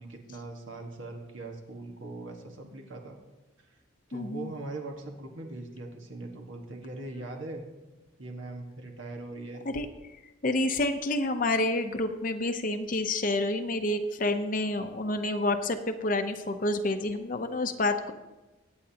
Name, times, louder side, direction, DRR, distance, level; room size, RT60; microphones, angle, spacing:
voice 1, 0.0-3.2 4.1-7.6 8.2-9.6, right 2 dB, 75° right, 2 dB, 1.5 m, -40 dB
voice 2, 4.1-4.5 9.6-9.9 10.4-18.1, left 2 dB, 40° left, 6 dB, 0.7 m, -28 dB
23.0 x 8.7 x 2.9 m, 1.1 s
head